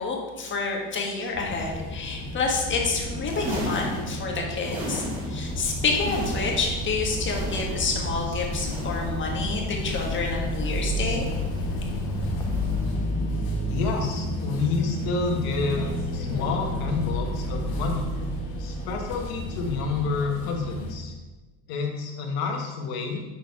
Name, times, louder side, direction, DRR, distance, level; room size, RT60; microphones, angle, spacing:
voice 1, 0.0-11.3, left 4 dB, 30° left, 0 dB, 1.4 m, -28 dB
sound 1, 1.3-20.9, left 1 dB, 90° left, 2.1 m, -31 dB
sound 2, 3.1-5.5 5.8-6.8 7.1-8.1 8.4-9.3 9.7-10.5 11.0-11.7 12.4-13.0 13.7-14.3 15.0-15.5 16.4-16.7 17.7-17.9 19.0-19.1, equal, 30° right, 2.4 m, -37 dB
Bird, 5.4-13.0, left 1 dB, 10° left, 0.5 m, -34 dB
voice 2, 13.7-18.1 18.6-21.1 21.7-23.2, left 4 dB, 75° left, 1 dB, 1.6 m, -29 dB
6.6 x 5.1 x 4.7 m, 1.2 s
cardioid pair, 145°, 38 cm